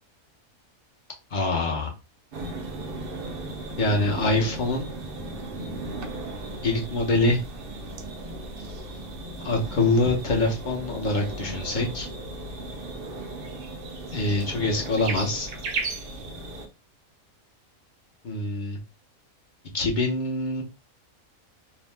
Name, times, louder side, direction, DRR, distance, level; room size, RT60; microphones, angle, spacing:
voice 1, 1.3-1.9 3.8-4.9 6.6-7.4 9.4-12.1 14.1-15.5 18.2-18.8 19.7-20.6, left 2 dB, 45° left, 0 dB, 0.7 m, -24 dB
sound 1, 2.3-16.7, right 2 dB, 60° right, 0.6 m, -36 dB
2.8 x 2.1 x 3.2 m, 0.28 s
omnidirectional pair, 1.4 m